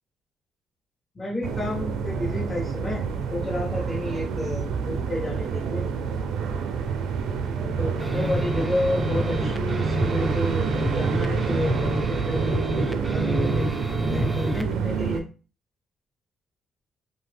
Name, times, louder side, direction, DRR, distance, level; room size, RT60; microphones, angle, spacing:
voice 1, 1.1-3.0 3.3-5.8 7.5-10.7 10.9-12.5 12.8-12.9 13.1-13.8 14.1-15.3, left 1 dB, 25° left, -4 dB, 1.0 m, -31 dB
sound 1, 1.4-15.2, right 6 dB, 85° right, 0.4 m, -28 dB
sound 2, 8.0-14.7, left 1 dB, ahead, 0.4 m, -28 dB
2.7 x 2.4 x 3.3 m, 0.34 s
cardioid pair, 90°, 0 cm